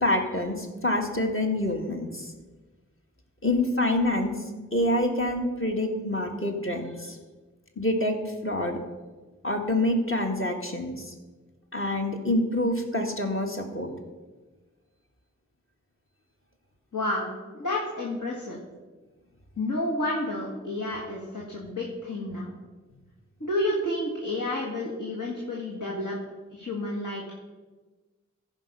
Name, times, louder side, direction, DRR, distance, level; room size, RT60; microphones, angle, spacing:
voice 1, 0.0-2.3 3.4-4.3 4.7-7.2 7.8-8.2 8.4-8.8 9.4-11.1 11.7-13.9, left 1 dB, 45° left, 3 dB, 1.7 m, -26 dB
voice 2, 16.9-18.6 19.6-22.5 23.4-26.2 26.5-27.4, left 1 dB, 75° left, -3 dB, 1.8 m, -30 dB
14.5 x 5.2 x 5.4 m, 1.3 s
wide cardioid pair, 45°, 31 cm